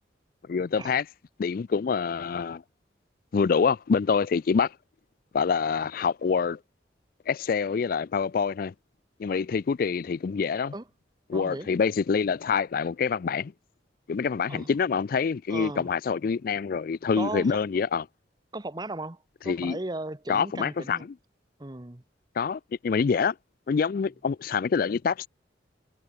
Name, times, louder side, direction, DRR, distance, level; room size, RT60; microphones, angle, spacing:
voice 1, 0.5-1.1 1.4-2.6 3.3-4.7 5.3-6.6 7.3-8.7 9.2-10.7 11.3-13.5 14.1-18.0 19.5-19.8 20.3-21.0 22.4-23.3 23.7-25.3, left 5 dB, 50° left, 0.4 m, -26 dB
voice 2, 11.3-11.7 14.5-14.7 15.5-15.9 17.2-17.6 18.5-21.1 21.6-22.0, right 2 dB, 25° right, 1.1 m, -36 dB
head